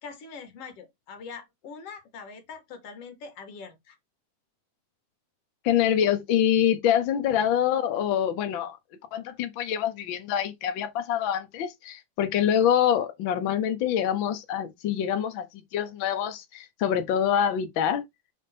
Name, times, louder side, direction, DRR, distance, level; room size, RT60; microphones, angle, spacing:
voice 1, 0.0-4.0, left 5 dB, 55° left, 2.3 m, -43 dB
voice 2, 5.6-8.8 9.1-18.0, left 9 dB, 70° left, 1.1 m, -25 dB
6.3 x 3.6 x 4.2 m
omnidirectional pair, 3.5 m